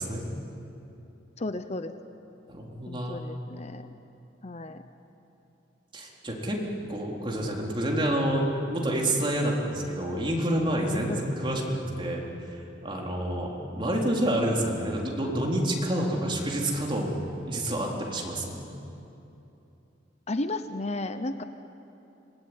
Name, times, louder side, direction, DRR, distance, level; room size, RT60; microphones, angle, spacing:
voice 1, 1.4-1.9 2.9-3.9 4.4-4.8 11.1-11.2 20.3-21.4, left 2 dB, 40° left, 9 dB, 0.8 m, -33 dB
voice 2, 2.5-3.3 5.9-6.6 6.9-8.4 8.7-17.2 17.5-18.6, right 1 dB, 30° right, -1 dB, 4.0 m, -28 dB
26.0 x 20.5 x 9.8 m, 2.9 s
head